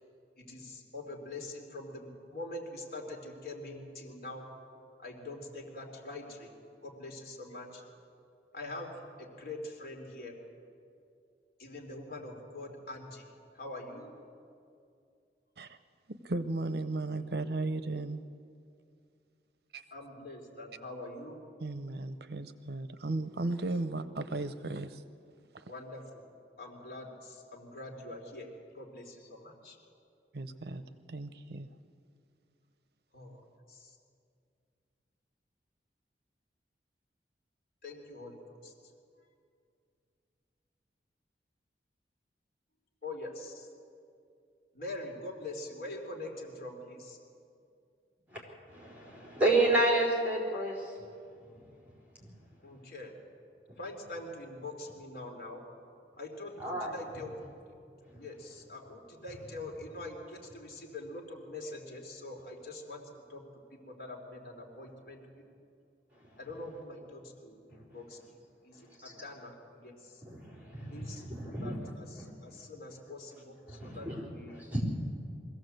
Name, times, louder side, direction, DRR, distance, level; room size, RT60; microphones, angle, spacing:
voice 1, 0.4-4.5 5.0-6.5 6.8-7.8 8.5-8.9 9.2-10.3 11.6-13.3 13.6-14.1 19.9-21.4 25.7-26.2 26.6-28.5 28.7-29.8 33.1-33.4 33.7-33.9 37.8-38.7 43.0-43.7 44.7-47.2 52.6-53.1 53.8-55.6 56.2-57.3 58.1-63.4 63.9-65.4 66.4-68.4 68.6-70.2 70.9-74.6, left 2 dB, 55° left, 0 dB, 3.4 m, -44 dB
voice 2, 16.1-18.2 19.7-19.8 21.6-25.0 25.5-25.7 30.3-30.8 31.1-31.7, right 2 dB, 70° right, 11 dB, 0.8 m, -35 dB
voice 3, 48.7-50.9 56.6-56.9 69.0-69.1 70.3-71.9 73.7-74.2 74.5-74.8, right 2 dB, 10° right, -2 dB, 4.4 m, -30 dB
23.0 x 16.0 x 7.9 m, 2.4 s
head